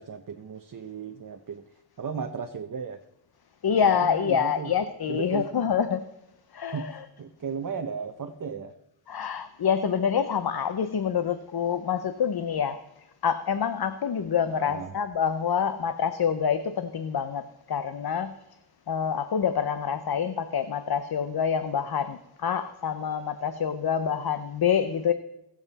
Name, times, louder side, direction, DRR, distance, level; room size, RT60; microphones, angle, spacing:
voice 1, 0.0-1.6 2.0-3.0 3.7-4.7 5.1-5.5 6.7-8.7 14.5-14.9, right 6 dB, 45° right, 6 dB, 0.7 m, -35 dB
voice 2, 3.6-6.0 6.5-7.0 9.1-12.8 13.2-18.3 18.9-25.1, left 7 dB, 55° left, 11 dB, 0.7 m, -26 dB
21.0 x 7.5 x 4.1 m, 0.87 s
wide cardioid pair, 130°, 45 cm